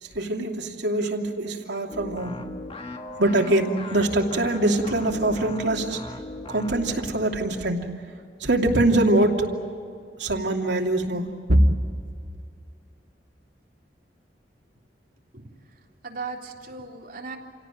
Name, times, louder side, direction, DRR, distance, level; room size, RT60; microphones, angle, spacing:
voice 1, 0.0-2.4 3.2-6.0 6.5-7.9 8.4-9.5 10.2-11.6, right 1 dB, 85° right, 2 dB, 2.9 m, -23 dB
sound 1, 1.9-7.1, left 2 dB, 35° left, 1.7 m, -38 dB
voice 2, 15.3-17.4, right 4 dB, 55° right, 0 dB, 3.7 m, -38 dB
28.5 x 17.5 x 9.2 m, 2.3 s
head